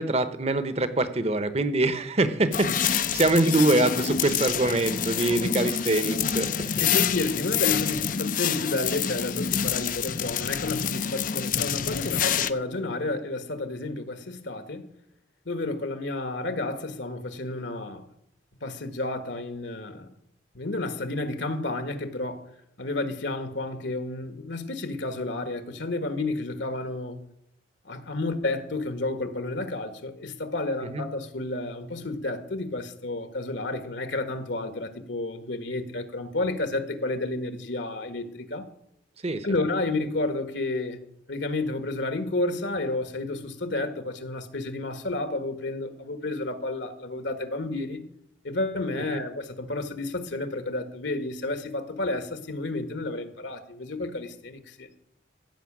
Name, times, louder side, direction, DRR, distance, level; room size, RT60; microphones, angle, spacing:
voice 1, 0.0-6.9 30.9-31.0 39.2-39.5 48.9-49.0, right 2 dB, 35° right, 1.0 m, -24 dB
sound 1, 2.5-12.5, left 8 dB, 45° left, 0.5 m, -27 dB
voice 2, 6.8-14.9 15.4-18.1 18.6-20.1 20.5-22.4 22.8-27.2 27.8-38.7 39.4-41.0 41.3-48.0 48.4-54.9, left 2 dB, 70° left, 1.5 m, -31 dB
15.5 x 5.8 x 8.6 m
head